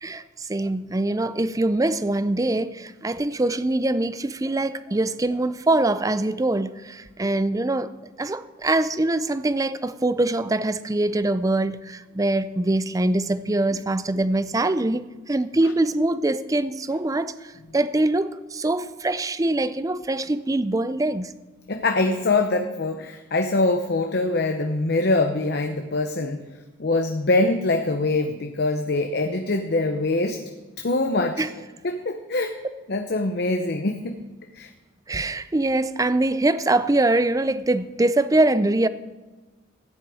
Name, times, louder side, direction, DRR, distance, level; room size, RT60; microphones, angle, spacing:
voice 1, 0.0-7.9 8.2-21.3 31.4-31.5 35.1-38.9, right 2 dB, 15° right, 0.4 m, -23 dB
voice 2, 21.7-26.4 26.8-30.4 30.8-31.4 31.8-32.6 32.9-34.2 34.5-34.7, left 2 dB, 55° left, 0.8 m, -23 dB
15.0 x 9.7 x 4.9 m
head